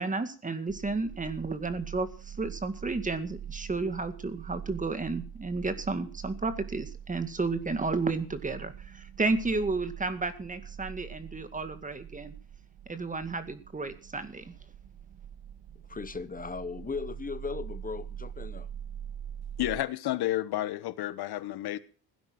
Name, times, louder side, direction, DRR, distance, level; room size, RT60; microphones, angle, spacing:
voice 1, 0.0-12.3 12.9-14.5, right 3 dB, 20° right, 2.0 m, -32 dB
sound 1, 0.7-19.8, right 9 dB, 75° right, 2.0 m, -44 dB
voice 2, 15.9-18.7, left 4 dB, 20° left, 0.9 m, -37 dB
voice 3, 19.6-21.8, left 14 dB, 80° left, 1.4 m, -31 dB
17.0 x 9.7 x 6.0 m
cardioid pair, 120°, 38 cm